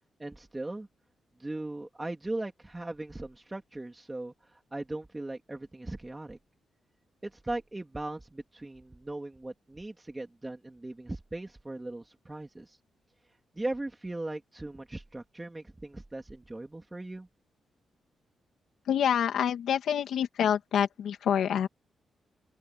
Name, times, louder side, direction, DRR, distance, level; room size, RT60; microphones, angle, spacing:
voice 1, 0.2-0.9 1.4-6.4 7.2-12.8 13.5-17.3, right 2 dB, 15° right, 3.3 m, -38 dB
voice 2, 18.9-21.7, left 9 dB, 85° left, 2.3 m, -27 dB
open air
cardioid pair, 100°, 0 cm